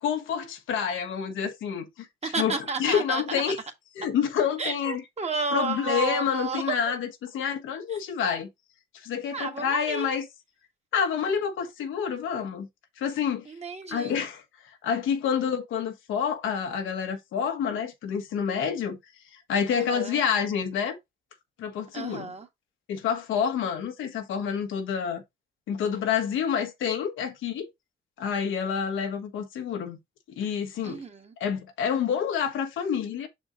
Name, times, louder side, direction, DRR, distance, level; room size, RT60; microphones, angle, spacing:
voice 1, 0.0-2.1 2.4-3.6 4.0-5.0 5.5-8.5 8.9-10.2 10.9-12.7 13.0-13.5 13.9-19.0 19.3-21.0 21.6-22.3 22.9-25.2 25.7-27.7 28.2-30.0 30.4-31.0 31.4-33.3, left 7 dB, 80° left, 1.3 m, -28 dB
voice 2, 2.2-3.2 4.6-7.0 7.9-8.0 9.3-10.1 13.4-14.2 19.7-20.2 21.9-22.5 30.8-31.3, right 4 dB, 35° right, 1.7 m, -32 dB
6.2 x 4.4 x 3.7 m
cardioid pair, 90°, 20 cm